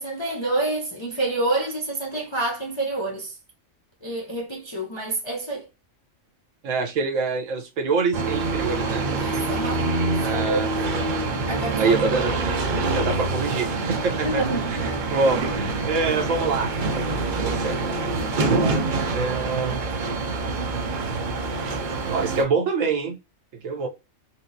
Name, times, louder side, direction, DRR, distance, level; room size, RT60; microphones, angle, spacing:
voice 1, 0.0-3.3 4.0-5.7 9.2-9.9 10.2-10.8 11.5-12.0 14.2-14.8, right 2 dB, 40° left, 0.4 m, -28 dB
voice 2, 6.6-9.0 10.2-10.7 11.5-12.4 13.0-14.6 15.1-19.8 22.0-23.2 23.6-23.9, right 4 dB, 75° right, 1.1 m, -26 dB
sound 1, 8.1-22.4, right 3 dB, 55° right, 0.5 m, -26 dB
4.3 x 2.0 x 2.6 m
omnidirectional pair, 1.4 m